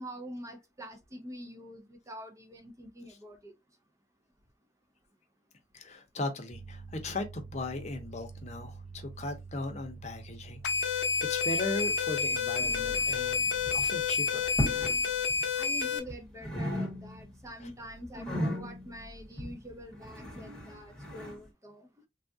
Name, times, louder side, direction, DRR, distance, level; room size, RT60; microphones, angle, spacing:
voice 1, 0.0-3.5 15.6-21.9, equal, 20° right, 0.5 m, -45 dB
voice 2, 5.7-10.6 10.9-14.6, left 2 dB, 40° left, 0.7 m, -38 dB
sound 1, 6.5-14.3, right 4 dB, 55° right, 1.1 m, -48 dB
sound 2, 10.6-16.0, left 5 dB, 85° left, 0.6 m, -29 dB
sound 3, 12.6-13.3 13.5-13.9 14.4-15.0 15.3-16.2 16.4-17.4 17.7-21.4, equal, 5° left, 1.0 m, -36 dB
3.4 x 2.4 x 2.6 m
head